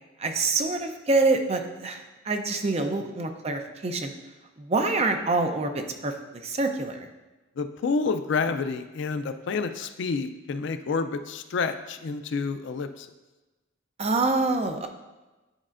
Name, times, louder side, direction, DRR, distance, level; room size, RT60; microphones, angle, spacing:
voice 1, 0.2-4.1 4.6-6.1 6.4-7.1 14.0-14.9, right 3 dB, 35° right, 5 dB, 0.5 m, -26 dB
voice 2, 7.6-13.1, left 4 dB, 65° left, 9 dB, 0.4 m, -29 dB
9.9 x 4.2 x 2.5 m, 1.1 s
head